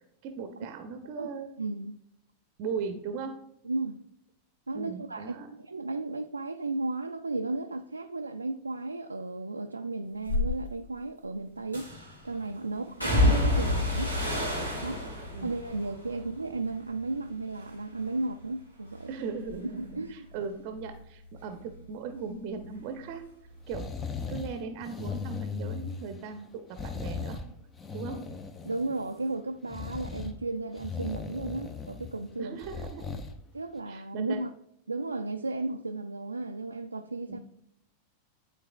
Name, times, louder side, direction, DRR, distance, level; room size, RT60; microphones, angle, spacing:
voice 1, 0.2-1.5 2.6-3.4 4.7-5.5 12.7-12.8 14.9-15.5 19.1-23.3 23.7-23.9 24.3-27.4 27.9-28.3 32.4-33.2 33.9-34.4 37.3-37.4, right 5 dB, 45° right, 0.7 m, -38 dB
voice 2, 1.6-1.9 3.6-4.0 4.7-11.9 12.2-14.1 14.8-15.0 15.4-19.1 19.8-20.3 28.6-32.6 33.5-34.5 34.9-37.4, right 2 dB, 80° right, 0.3 m, -34 dB
sound 1, 10.3-10.5 11.7-12.2 13.0-17.2 17.6-18.2 18.6-21.8 22.1-23.2 23.5-23.7, left 1 dB, 85° left, 2.4 m, -30 dB
sound 2, 23.7-24.5 24.8-26.2 26.7-27.5 27.7-29.1 29.7-30.3 30.8-32.1 32.6-33.3 33.8-33.9, left 5 dB, 20° left, 0.6 m, -37 dB
11.5 x 3.9 x 2.3 m
figure-of-eight pair, 90°, 0 cm